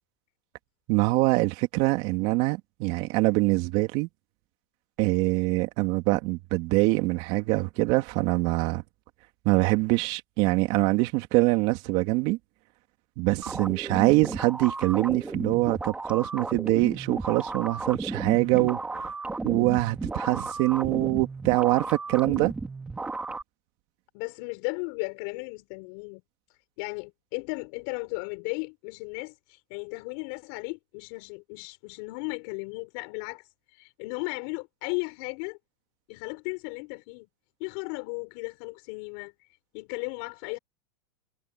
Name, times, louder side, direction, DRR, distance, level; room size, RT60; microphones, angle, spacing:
voice 1, 0.9-4.1 5.0-8.8 9.4-12.4 13.2-19.1 19.4-22.5, right 21 dB, 45° right, 2.8 m, -24 dB
sound 1, 13.4-23.4, right 3 dB, 10° right, 3.4 m, -34 dB
voice 2, 24.1-26.2 26.8-33.4 33.7-35.6 36.1-37.3 37.6-39.3 39.7-40.6, left 33 dB, 55° left, 7.1 m, -35 dB
supercardioid pair, 150°, 14 cm